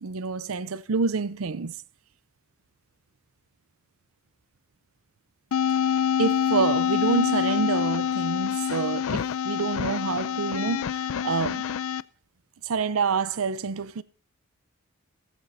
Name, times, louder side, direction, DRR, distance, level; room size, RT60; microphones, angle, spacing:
voice 1, 0.0-1.7 6.2-10.9 11.2-11.6 12.7-14.0, right 5 dB, 80° right, 0.6 m, -27 dB
sound 1, 5.5-12.0, left 8 dB, 75° left, 0.4 m, -26 dB
16.0 x 14.5 x 2.7 m
head